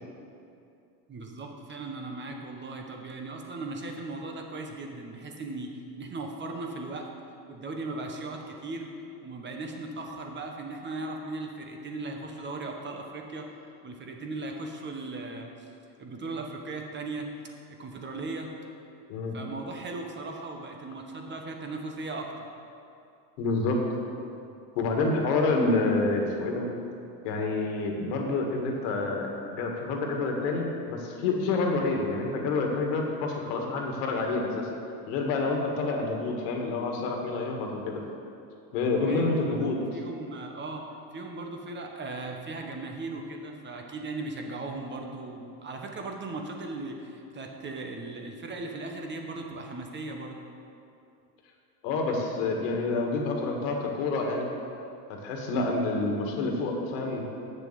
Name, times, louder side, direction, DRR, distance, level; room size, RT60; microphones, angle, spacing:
voice 1, 1.1-7.1 7.5-8.9 9.2-13.5 13.8-15.7 16.0-17.3 17.8-18.5 19.3-22.3 35.5-35.7 39.1-40.8 41.1-50.4 55.5-55.7, right 3 dB, 20° right, 2 dB, 1.2 m, -38 dB
voice 2, 23.4-23.8 24.8-26.7 27.2-34.7 35.1-38.0 38.7-39.8 51.8-54.5 55.1-57.3, left 3 dB, 70° left, 1 dB, 1.9 m, -28 dB
8.0 x 6.8 x 7.4 m, 2.6 s
supercardioid pair, 125°, 49 cm